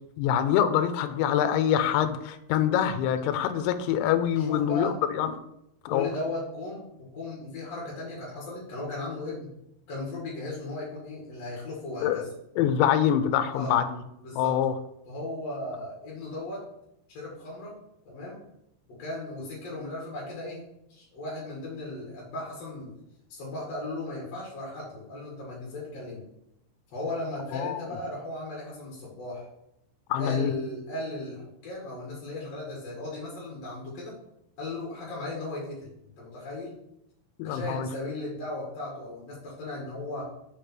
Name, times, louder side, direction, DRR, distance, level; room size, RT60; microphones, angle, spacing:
voice 1, 0.2-5.3 5.9-6.1 12.0-12.2 12.6-14.0 14.4-14.7 27.5-27.8 30.1-30.5 37.4-37.9, left 9 dB, 85° left, 9 dB, 2.8 m, -25 dB
voice 2, 4.4-4.9 5.9-9.5 9.9-12.3 13.5-13.8 14.2-14.6 15.1-16.7 17.1-17.7 18.1-18.4 19.0-20.6 20.9-22.9 23.3-26.2 26.9-29.5 30.2-34.1 34.6-35.9 36.2-36.7 37.4-40.3, left 2 dB, 50° left, -5 dB, 2.0 m, -36 dB
6.5 x 5.1 x 5.9 m, 0.82 s
omnidirectional pair, 5.5 m